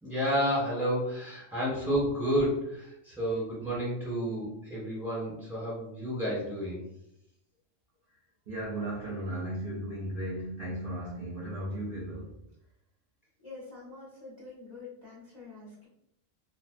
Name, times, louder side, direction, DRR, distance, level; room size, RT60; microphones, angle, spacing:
voice 1, 0.0-6.8, equal, ahead, 1.0 m, -30 dB
voice 2, 8.5-12.3, right 1 dB, 55° right, 0.7 m, -35 dB
voice 3, 13.4-15.9, left 3 dB, 30° left, 0.6 m, -46 dB
2.4 x 2.3 x 2.4 m
omnidirectional pair, 1.4 m